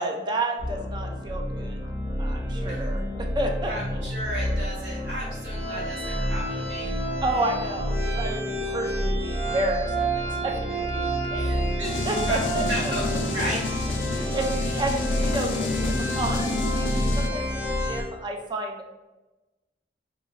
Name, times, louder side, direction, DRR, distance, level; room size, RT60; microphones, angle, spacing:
voice 1, 0.0-1.8 2.2-3.7 7.2-11.7 12.1-12.9 14.1-19.0, right 1 dB, 25° right, 3 dB, 0.3 m, -31 dB
sound 1, 0.6-18.0, equal, 10° right, 0.8 m, -28 dB
voice 2, 3.7-7.0 11.4-11.9 12.3-13.6 14.6-14.8 15.5-15.6, equal, 75° right, -5 dB, 1.0 m, -34 dB
sound 2, 11.8-17.3, left 3 dB, 90° left, 0.3 m, -30 dB
2.5 x 2.3 x 3.1 m, 1.1 s
head